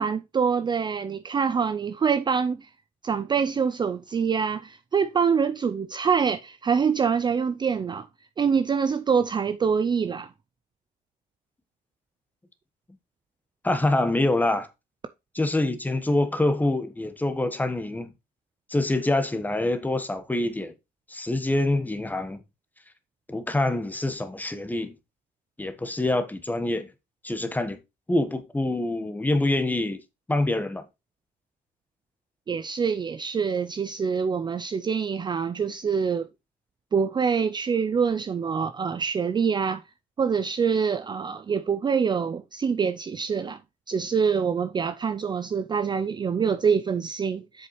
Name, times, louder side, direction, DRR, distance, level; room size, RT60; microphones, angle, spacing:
voice 1, 0.0-2.7 3.0-8.1 8.4-10.3 32.5-36.3 36.9-39.8 40.2-43.6 43.9-47.7, right 6 dB, 25° right, 0.4 m, -25 dB
voice 2, 13.6-14.7 15.3-18.1 18.7-20.7 21.1-22.4 23.3-24.9 25.6-26.9 27.2-27.8 28.1-30.0 30.3-30.8, left 2 dB, 10° left, 1.2 m, -25 dB
7.9 x 6.6 x 3.2 m
cardioid pair, 110°, 17 cm